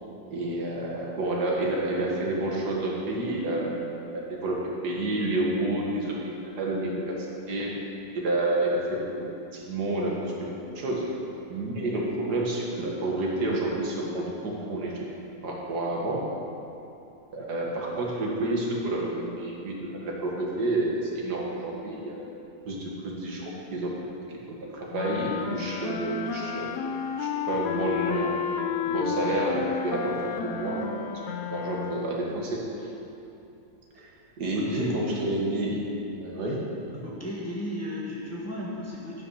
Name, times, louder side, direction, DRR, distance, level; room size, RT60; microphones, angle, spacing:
voice 1, 0.3-3.8 4.1-7.8 8.2-11.1 11.5-15.1 15.4-16.3 17.3-22.3 22.7-23.9 24.5-26.7 27.2-28.4 28.8-31.0 31.5-32.6 34.0-34.1 34.4-36.6 36.9-37.1, right 1 dB, 80° right, -3 dB, 2.1 m, -29 dB
sound 1, 24.9-32.3, left 7 dB, 70° left, 0.9 m, -31 dB
voice 2, 34.5-34.9 37.0-39.2, equal, 10° left, -5 dB, 1.2 m, -35 dB
11.5 x 5.7 x 5.7 m, 2.8 s
omnidirectional pair, 1.7 m